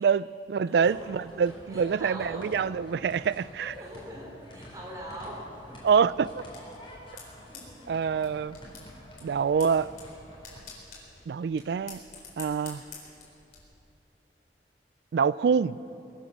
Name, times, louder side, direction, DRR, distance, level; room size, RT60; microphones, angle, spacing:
voice 1, 0.0-3.7 5.8-6.3 7.9-8.6 9.2-9.9 11.3-12.0 12.4-12.8 15.1-15.8, right 6 dB, 65° right, 19 dB, 0.3 m, -26 dB
voice 2, 0.6-1.4 1.7-2.5 3.6-5.8 7.5-7.9 15.5-15.7, equal, 20° right, -3 dB, 3.7 m, -43 dB
sound 1, 0.8-10.6, equal, 30° left, 3.7 m, -48 dB
sound 2, 5.8-13.6, left 5 dB, 55° left, 4.2 m, -49 dB
22.5 x 9.2 x 6.6 m, 2.9 s
head